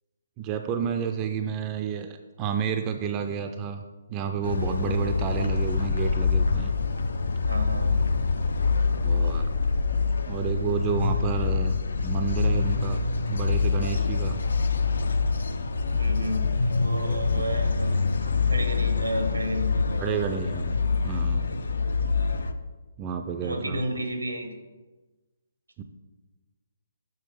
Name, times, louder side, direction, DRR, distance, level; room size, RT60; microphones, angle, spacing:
voice 1, 0.4-3.8 4.1-6.7 9.0-9.5 10.3-14.4 17.3-17.4 20.0-20.7 21.0-21.4 23.0-23.8 25.8-25.9, right 6 dB, 25° right, 6 dB, 0.4 m, -30 dB
sound 1, 4.4-22.5, left 4 dB, 70° left, 0.4 m, -25 dB
voice 2, 7.5-8.0 15.9-18.1 18.5-20.2 23.4-24.5, equal, 85° right, 6 dB, 1.1 m, -32 dB
6.8 x 5.8 x 3.3 m, 1.2 s
figure-of-eight pair, 135°, 0 cm